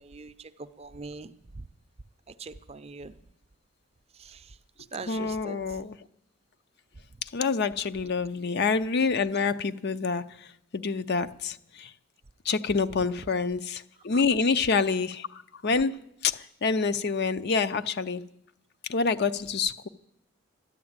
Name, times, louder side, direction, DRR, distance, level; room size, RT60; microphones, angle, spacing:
voice 1, 0.0-1.3 2.4-3.2 4.2-4.5 4.9-5.6, right 4 dB, 30° right, 12 dB, 0.5 m, -42 dB
voice 2, 5.1-6.0 7.2-10.2 10.7-11.9 12.5-18.2 18.9-19.9, left 4 dB, 50° left, 12 dB, 0.5 m, -27 dB
13.0 x 11.0 x 8.7 m, 0.79 s
head